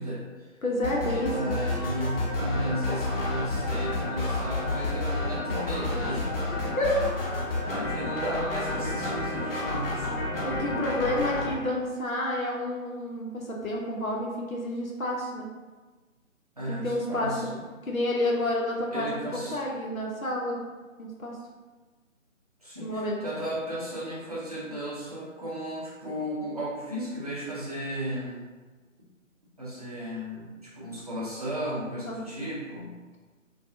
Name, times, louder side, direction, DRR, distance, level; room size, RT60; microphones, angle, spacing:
voice 1, 0.0-0.5 1.1-6.3 7.7-10.1 16.6-17.6 18.9-19.6 22.6-28.5 29.6-32.9, right 1 dB, 30° right, -8 dB, 0.6 m, -34 dB
voice 2, 0.6-1.6 6.6-7.1 10.4-15.5 16.7-17.4 17.8-20.6 21.0-21.4 22.8-23.2 32.0-32.2, left 1 dB, 90° left, -2 dB, 0.7 m, -29 dB
sound 1, 0.8-11.5, left 2 dB, 45° left, 0.7 m, -30 dB
2.5 x 2.3 x 2.6 m, 1.3 s
figure-of-eight pair, 150°, 40 cm